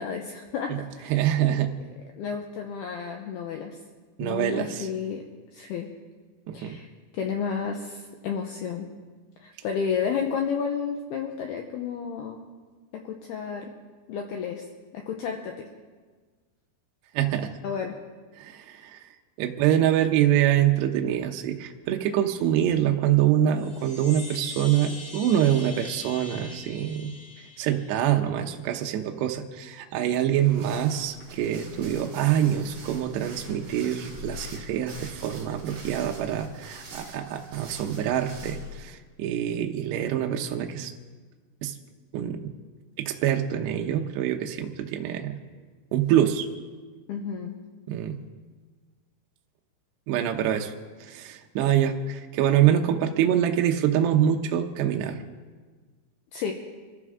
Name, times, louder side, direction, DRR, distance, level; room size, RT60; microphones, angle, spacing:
voice 1, 0.0-1.2 1.5-1.6 2.1-3.8 4.2-5.2 5.5-5.9 6.5-6.9 7.1-8.9 9.4-12.4 12.9-13.7 14.1-14.7 14.9-15.7 17.6-18.0 47.1-47.5 56.3-56.5, left 6 dB, 75° left, 3 dB, 2.6 m, -31 dB
voice 2, 1.1-1.7 4.2-4.9 6.5-6.7 17.1-17.5 18.4-19.0 19.4-27.1 27.6-40.9 41.6-41.7 42.1-42.5 43.0-45.4 45.9-46.5 47.9-48.2 50.1-50.7 51.0-55.2, right 10 dB, 75° right, 3 dB, 2.8 m, -25 dB
Chime, 23.5-28.2, left 3 dB, 55° left, 3.7 m, -42 dB
sound 1, 30.3-38.8, equal, 40° right, 4.7 m, -43 dB
26.5 x 14.5 x 3.6 m, 1.4 s
omnidirectional pair, 5.4 m